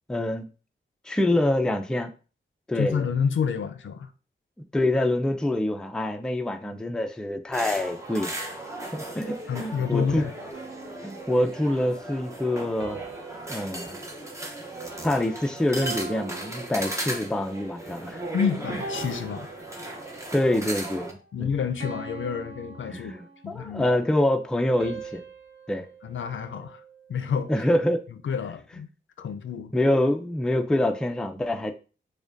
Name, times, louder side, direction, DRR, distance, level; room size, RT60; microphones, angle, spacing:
voice 1, 0.1-0.5 1.1-2.1 2.7-3.0 4.7-8.3 8.9-10.2 11.0-13.0 13.5-14.0 15.0-18.2 20.3-21.5 22.9-25.2 25.7-25.9 27.5-28.0 29.7-31.7, left 1 dB, 5° left, 0.4 m, -26 dB
voice 2, 2.7-4.1 9.5-10.3 18.3-19.5 21.3-23.1 23.4-23.9 26.0-26.8 27.1-27.5 28.2-28.9 29.2-29.7, left 6 dB, 70° left, 0.4 m, -29 dB
sound 1, 7.5-21.1, right 1 dB, 15° right, 0.7 m, -37 dB
sound 2, 10.5-11.8 12.8-15.3 15.8-17.5 18.1-18.3 18.8-20.3 20.8-21.1 21.8-23.7 24.8-27.2, right 4 dB, 60° right, 0.7 m, -42 dB
4.9 x 2.2 x 2.5 m
wide cardioid pair, 85°, 21 cm